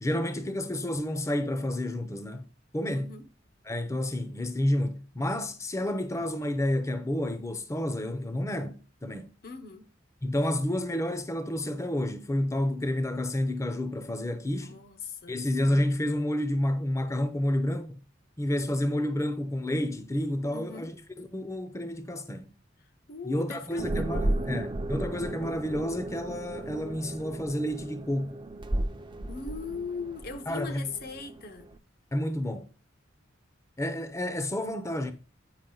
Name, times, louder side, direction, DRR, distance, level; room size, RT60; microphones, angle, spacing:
voice 1, 0.0-2.5 2.7-3.1 3.6-9.3 10.2-14.7 15.3-18.0 18.4-22.5 23.2-28.4 30.5-30.9 32.1-32.7 33.8-35.1, left 1 dB, 15° left, 0.7 m, -30 dB
voice 2, 2.9-3.3 9.4-9.9 14.6-15.4 20.5-20.9 23.1-24.6 29.3-31.7, left 5 dB, 55° left, 0.9 m, -39 dB
sound 1, 23.8-31.8, right 1 dB, 25° right, 0.6 m, -34 dB
8.9 x 5.1 x 3.9 m
head